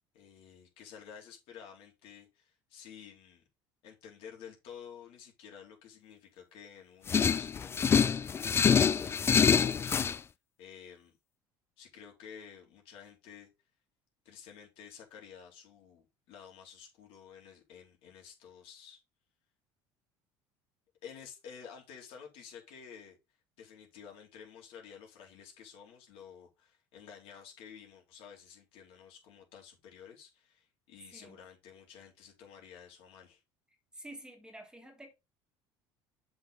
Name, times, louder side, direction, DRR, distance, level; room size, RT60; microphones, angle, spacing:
voice 1, 0.1-3.4 3.8-10.0 10.6-11.1 11.8-13.5 14.3-19.0 21.0-23.2 23.6-33.4, left 7 dB, 70° left, 3.9 m, -52 dB
sound 1, 7.1-10.2, left 6 dB, 25° left, 0.4 m, -25 dB
voice 2, 33.9-35.1, right 1 dB, 10° right, 1.9 m, -49 dB
7.3 x 6.2 x 3.9 m
supercardioid pair, 105°, 10 cm